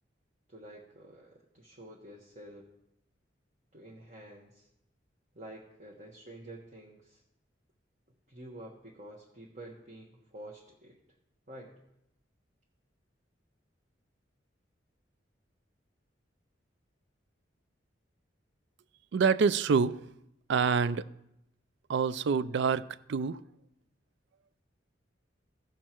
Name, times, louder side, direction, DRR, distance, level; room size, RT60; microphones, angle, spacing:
voice 1, 0.5-2.7 3.7-4.7 5.3-7.2 8.3-11.0 11.5-11.8, right 1 dB, 45° right, 1.2 m, -49 dB
voice 2, 19.1-20.1 20.5-21.1 21.9-23.4, right 5 dB, 65° right, 0.4 m, -27 dB
15.5 x 6.5 x 4.5 m
head